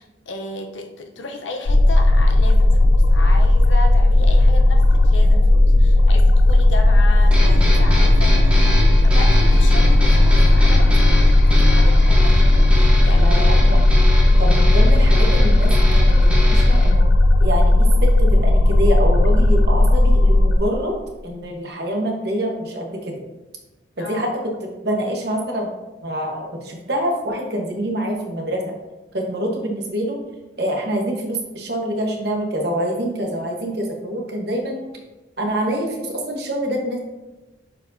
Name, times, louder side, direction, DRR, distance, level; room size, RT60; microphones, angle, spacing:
voice 1, 0.0-8.7 9.0-13.6 24.0-24.4, left 2 dB, 90° left, 4 dB, 0.8 m, -34 dB
sound 1, 1.7-20.6, left 1 dB, 70° left, 0.5 m, -14 dB
sound 2, 7.3-16.9, equal, 5° right, 1.1 m, -25 dB
voice 2, 13.1-13.9 14.4-17.0 17.4-20.9 21.2-23.2 24.0-24.3 24.6-25.7 26.0-28.6 29.1-30.2 30.6-34.8 35.4-37.0, right 1 dB, 60° right, 1 dB, 1.2 m, -25 dB
8.9 x 4.7 x 2.7 m, 1.1 s
head